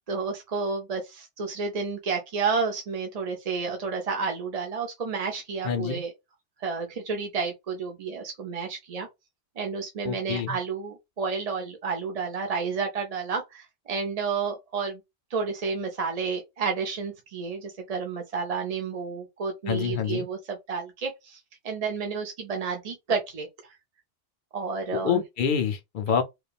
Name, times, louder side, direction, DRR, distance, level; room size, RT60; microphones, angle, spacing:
voice 1, 0.1-6.1 6.6-9.1 9.6-15.0 15.3-21.4 21.6-23.5 24.5-25.2, right 5 dB, 45° right, 0.6 m, -31 dB
voice 2, 5.6-6.0 10.0-10.6 19.7-20.2 24.9-26.2, left 7 dB, 55° left, 0.7 m, -27 dB
3.0 x 2.3 x 2.3 m
omnidirectional pair, 1.2 m